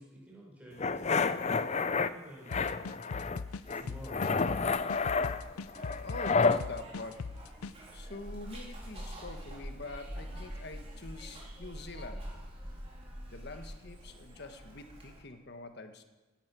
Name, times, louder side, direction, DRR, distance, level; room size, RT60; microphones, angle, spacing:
voice 1, 0.0-2.9 3.7-5.0, equal, 5° right, -4 dB, 4.9 m, -50 dB
sound 1, 0.8-2.1 2.5-3.4 3.7-6.6, left 4 dB, 30° left, 0.5 m, -29 dB
sound 2, 2.5-7.7, left 4 dB, 80° left, 0.6 m, -40 dB
Zipper (clothing), 3.5-15.2, equal, 25° right, 3.9 m, -46 dB
voice 2, 6.0-7.3 7.9-12.3 13.3-16.0, left 2 dB, 50° left, 7 dB, 1.3 m, -45 dB
17.5 x 11.5 x 6.1 m, 1.2 s
head